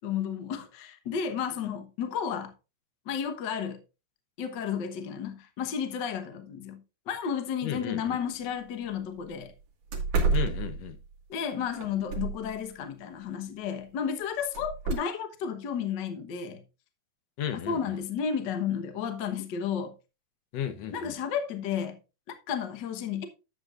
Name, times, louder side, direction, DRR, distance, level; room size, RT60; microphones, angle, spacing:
voice 1, 0.0-2.5 3.1-3.8 4.4-6.8 7.1-9.5 11.3-16.6 17.7-19.9 20.9-22.0 22.5-23.3, left 7 dB, 80° left, 0.9 m, -32 dB
voice 2, 7.6-8.2 10.3-11.0 17.4-17.9 20.5-21.1, left 9 dB, 65° left, 1.8 m, -34 dB
sound 1, 8.3-8.4 8.8-8.9 9.3-9.4 9.9-11.1 11.7-12.5 14.5-14.9, right 4 dB, 55° right, 3.0 m, -29 dB
11.5 x 7.8 x 2.5 m
omnidirectional pair, 3.8 m